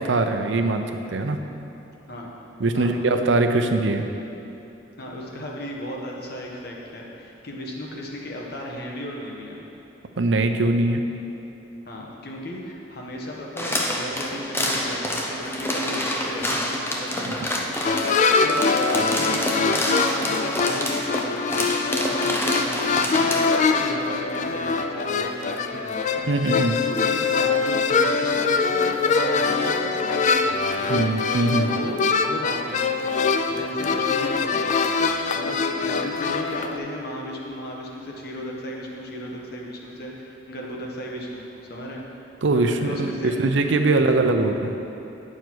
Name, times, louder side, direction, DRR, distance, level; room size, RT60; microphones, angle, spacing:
voice 1, 0.0-1.4 2.6-4.0 10.2-11.0 26.3-26.8 30.9-31.7 42.4-44.7, right 2 dB, 85° right, 6 dB, 0.6 m, -22 dB
voice 2, 5.0-9.6 11.9-17.7 18.1-19.8 20.2-26.5 26.8-31.1 31.7-34.8 35.3-43.4 43.8-44.1, equal, 60° left, -2 dB, 1.3 m, -35 dB
sound 1, 13.6-23.6, left 1 dB, 15° left, 0.7 m, -27 dB
sound 2, 17.8-36.8, left 4 dB, 40° left, 0.4 m, -23 dB
9.3 x 6.4 x 4.6 m, 2.9 s
head